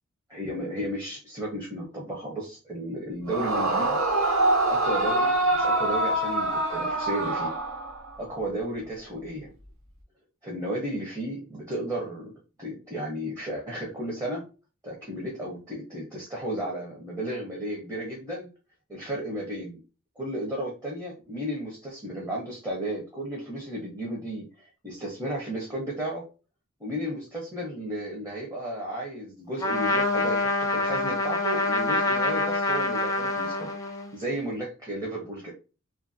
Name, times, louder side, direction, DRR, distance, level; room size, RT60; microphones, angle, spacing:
voice 1, 0.3-4.0 4.7-7.5 8.2-9.5 10.4-14.5 14.8-18.5 18.9-19.8 20.2-26.3 26.8-33.7 34.1-35.5, right 1 dB, 15° right, -4 dB, 0.7 m, -33 dB
Yell / Screaming, 3.3-8.2, right 2 dB, 75° right, 0.7 m, -25 dB
Trumpet, 29.6-34.2, left 2 dB, 15° left, 0.4 m, -26 dB
2.6 x 2.5 x 2.5 m, 0.32 s
head